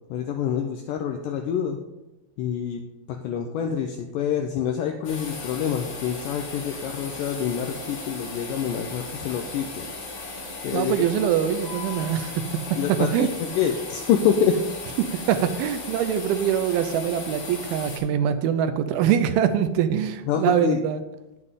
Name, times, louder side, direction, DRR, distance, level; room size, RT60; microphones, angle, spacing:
voice 1, 0.1-1.8 2.4-9.8 10.6-11.1 12.8-14.6 20.3-20.8, left 8 dB, 85° left, 4 dB, 1.9 m, -26 dB
sound 1, 5.0-18.0, left 3 dB, 55° left, 3.6 m, -37 dB
voice 2, 10.7-12.3 12.7-12.8 13.1-13.3 15.0-21.0, right 9 dB, 80° right, 9 dB, 2.4 m, -23 dB
Wind instrument woodwind instrument, 11.5-16.1, left 6 dB, 15° left, 2.5 m, -48 dB
9.6 x 7.9 x 3.6 m, 1.0 s
omnidirectional pair, 4.5 m